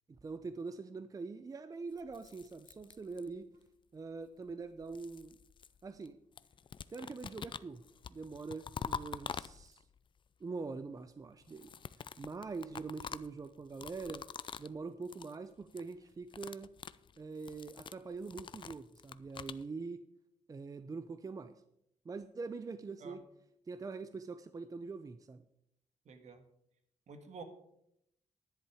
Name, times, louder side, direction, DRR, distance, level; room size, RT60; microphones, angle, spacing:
voice 1, 0.1-3.5 3.9-5.4 5.8-6.2 6.9-9.8 10.4-11.7 12.2-14.2 14.6-16.7 17.2-20.0 20.5-21.6 22.0-23.2 23.7-25.4, right 4 dB, 25° right, 11 dB, 0.6 m, -44 dB
sound 1, 2.0-3.6 4.5-6.1 6.4-10.0 11.4-14.8 15.0-15.4 15.6-15.9 16.2-19.6, left 7 dB, 40° left, 0.4 m, -46 dB
voice 2, 26.1-26.4 27.1-27.4, right 4 dB, 65° right, 7 dB, 1.7 m, -49 dB
10.5 x 10.5 x 4.9 m, 0.76 s
cardioid pair, 115°, 13 cm